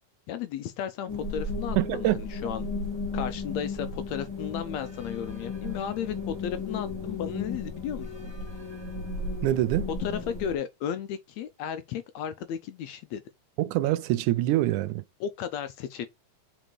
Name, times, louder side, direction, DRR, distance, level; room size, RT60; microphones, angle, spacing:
voice 1, 0.3-2.7 3.1-8.3 10.0-13.2 15.2-16.1, left 9 dB, 75° left, 1.8 m, -34 dB
sound 1, 1.1-10.5, left 3 dB, 10° left, 2.0 m, -35 dB
voice 2, 1.8-2.2 9.4-9.9 13.6-15.0, right 15 dB, 80° right, 2.1 m, -25 dB
6.3 x 4.5 x 4.6 m
omnidirectional pair, 3.5 m